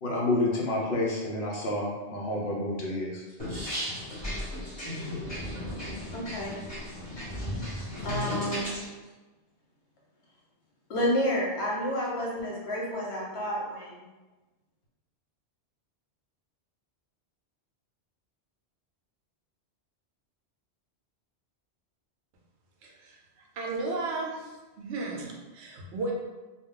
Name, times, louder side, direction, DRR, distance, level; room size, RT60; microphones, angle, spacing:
voice 1, 0.0-3.2, left 2 dB, 60° left, -4 dB, 0.9 m, -29 dB
sound 1, 3.4-8.8, left 1 dB, 25° left, 1.0 m, -35 dB
voice 2, 6.1-6.5 8.0-8.8 10.9-13.9, equal, 85° left, -3 dB, 1.1 m, -30 dB
voice 3, 22.8-26.1, right 3 dB, 80° right, -1 dB, 0.9 m, -35 dB
2.3 x 2.3 x 3.6 m, 1.2 s
omnidirectional pair, 1.1 m